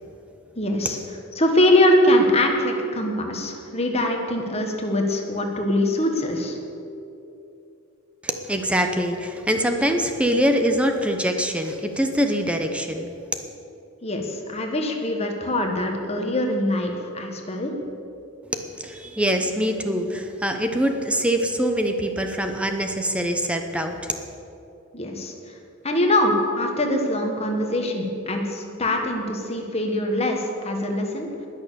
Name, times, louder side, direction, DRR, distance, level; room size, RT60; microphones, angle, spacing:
voice 1, 0.5-1.0 1.3-6.6 14.0-17.7 24.9-25.5 25.8-31.3, left 1 dB, 30° left, 3 dB, 1.4 m, -23 dB
voice 2, 8.2-13.1 18.5-24.2, equal, 5° right, 5 dB, 0.7 m, -24 dB
19.5 x 6.6 x 6.9 m, 2.8 s
head